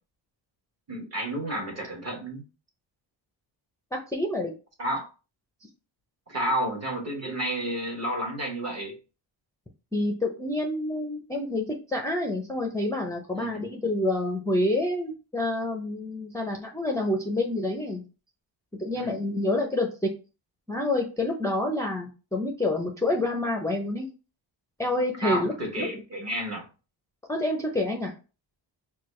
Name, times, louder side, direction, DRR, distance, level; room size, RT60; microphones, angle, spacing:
voice 1, 0.9-2.4 4.8-5.1 6.3-9.0 13.4-13.6 18.9-19.2 25.2-26.7, right 1 dB, 35° right, 1.2 m, -31 dB
voice 2, 3.9-4.5 9.9-18.0 18.8-20.1 20.7-24.1 24.8-25.9 27.3-28.1, left 1 dB, 5° left, 0.5 m, -28 dB
4.5 x 2.3 x 3.1 m
cardioid pair, 120°, 47 cm